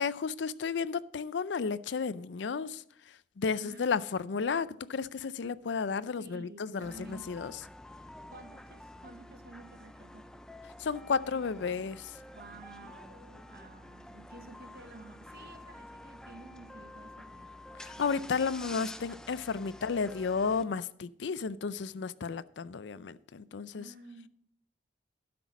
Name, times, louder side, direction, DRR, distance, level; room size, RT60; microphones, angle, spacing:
voice 1, 0.0-2.8 3.4-7.5 10.8-12.1 17.8-23.8, left 5 dB, 80° left, 17 dB, 0.4 m, -33 dB
voice 2, 3.5-4.4 6.2-7.3 8.3-10.3 12.3-17.5 18.0-18.2 23.7-24.3, right 2 dB, 55° right, 9 dB, 1.0 m, -51 dB
sound 1, 6.8-20.6, left 1 dB, 5° left, 0.3 m, -49 dB
12.0 x 6.1 x 6.1 m, 0.68 s
head